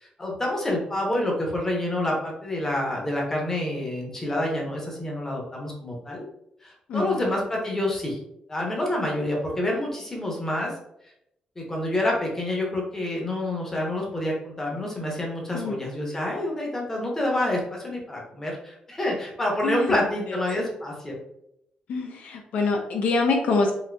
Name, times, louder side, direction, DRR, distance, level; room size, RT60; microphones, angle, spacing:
voice 1, 0.0-6.3 6.6-8.2 8.5-10.7 11.6-21.2, left 1 dB, 15° left, -2 dB, 0.7 m, -28 dB
voice 2, 6.9-7.3 15.5-15.8 19.6-20.0 20.3-20.4 21.9-23.7, left 3 dB, 70° left, 2 dB, 0.4 m, -25 dB
3.7 x 2.6 x 2.2 m, 0.79 s
wide cardioid pair, 160°, 2 cm